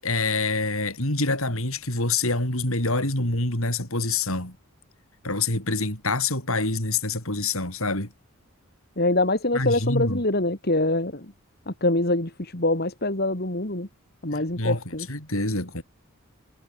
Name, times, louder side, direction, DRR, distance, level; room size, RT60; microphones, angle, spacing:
voice 1, 0.0-4.6 5.2-8.1 9.5-10.2 14.3-14.8 15.1-15.8, left 3 dB, 70° left, 7.9 m, -26 dB
voice 2, 9.0-11.3 11.7-13.9 14.2-15.1, left 2 dB, 45° left, 2.8 m, -24 dB
head